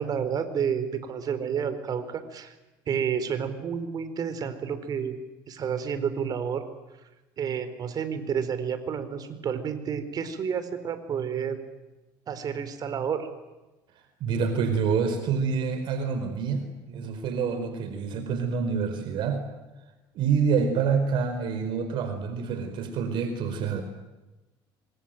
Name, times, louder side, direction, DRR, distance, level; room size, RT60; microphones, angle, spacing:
voice 1, 0.0-2.5 2.9-5.2 5.5-6.6 7.4-11.6 12.3-13.3, right 7 dB, 45° right, 11 dB, 4.2 m, -30 dB
voice 2, 14.2-19.4 20.1-23.8, right 6 dB, 60° right, 7 dB, 4.6 m, -27 dB
25.5 x 25.0 x 9.1 m, 1.1 s
supercardioid pair, 105°, 9 cm